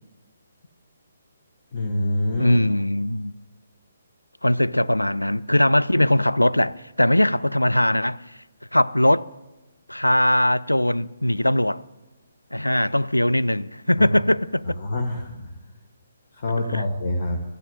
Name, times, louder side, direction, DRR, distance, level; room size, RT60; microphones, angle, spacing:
voice 1, 1.7-2.6 14.0-14.1 14.8-15.5 16.3-17.4, left 2 dB, 40° left, 1.3 m, -26 dB
voice 2, 2.4-3.3 4.4-8.2 8.7-9.3 9.9-11.8 12.5-14.8 16.6-16.8, left 1 dB, 85° left, 0.4 m, -20 dB
13.5 x 10.5 x 7.7 m
figure-of-eight pair, 135°, 0 cm